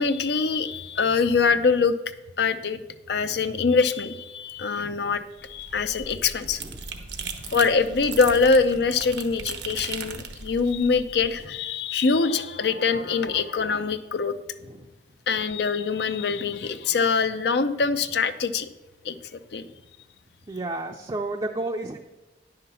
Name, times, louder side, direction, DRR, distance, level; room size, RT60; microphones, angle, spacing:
voice 1, 0.0-2.0 2.4-2.8 3.1-6.6 7.5-14.3 15.3-18.7 19.0-19.1 19.5-19.6, left 4 dB, 70° left, 10 dB, 0.5 m, -23 dB
sound 1, 5.4-11.5, right 5 dB, 85° right, 1.1 m, -38 dB
voice 2, 20.5-22.1, right 2 dB, 25° right, 2 dB, 0.5 m, -33 dB
10.0 x 5.8 x 6.8 m, 1.1 s
head